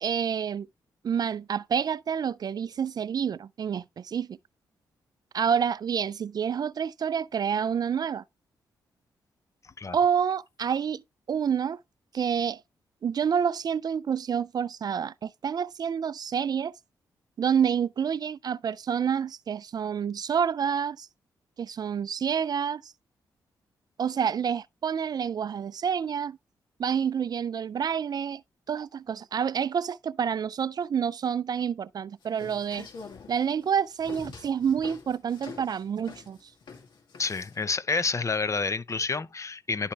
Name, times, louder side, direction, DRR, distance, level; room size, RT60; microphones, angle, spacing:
voice 1, 0.0-0.7 1.0-4.4 5.3-8.2 9.9-11.0 11.3-11.8 12.1-12.6 13.0-16.7 17.4-21.1 21.6-22.9 24.0-26.4 26.8-28.4 28.7-32.9 33.3-36.5, right 7 dB, 50° right, 0.4 m, -28 dB
sound 1, 32.2-37.6, left 5 dB, 70° left, 2.7 m, -45 dB
voice 2, 37.2-39.9, left 4 dB, 40° left, 0.8 m, -29 dB
11.5 x 4.3 x 3.3 m
supercardioid pair, 55°, 8 cm